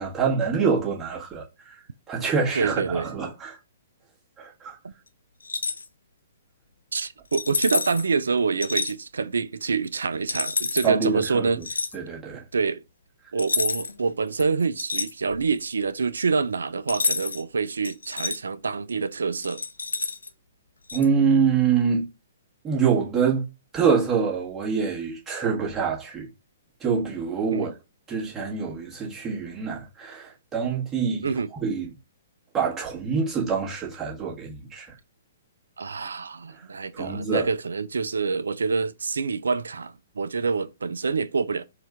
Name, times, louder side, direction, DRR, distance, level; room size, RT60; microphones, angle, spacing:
voice 1, 0.0-1.8 2.1-3.6 4.4-4.8 10.8-11.6 11.9-12.4 20.9-22.0 22.6-23.5 23.7-26.3 26.8-27.7 28.1-31.9 32.5-34.9 36.9-37.5, right 6 dB, 15° right, 1.5 m, -25 dB
voice 2, 2.5-3.1 6.9-11.8 12.5-12.8 13.3-19.6 27.5-27.7 31.2-31.5 35.8-41.6, right 4 dB, 70° right, 0.3 m, -26 dB
sound 1, 5.4-5.9 7.3-8.1 8.6-8.9 10.3-10.9 11.6-12.0 13.4-14.0 14.4-15.6 16.9-17.4 17.8-18.4 19.4-20.3 20.9-21.1, left 4 dB, 75° left, 0.4 m, -28 dB
4.3 x 2.4 x 3.4 m
figure-of-eight pair, 120°, 0 cm